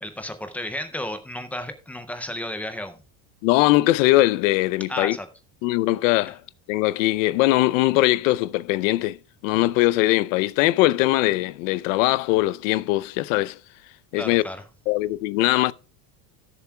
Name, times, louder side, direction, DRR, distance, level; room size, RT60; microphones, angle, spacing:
voice 1, 0.0-3.0 4.9-5.3 14.2-14.6, left 1 dB, 5° left, 0.3 m, -33 dB
voice 2, 3.4-5.2 5.6-6.4 6.7-9.2 9.4-13.6 14.1-14.4 14.9-15.7, left 18 dB, 60° left, 0.6 m, -21 dB
17.0 x 7.1 x 2.2 m
cardioid pair, 170°, 44 cm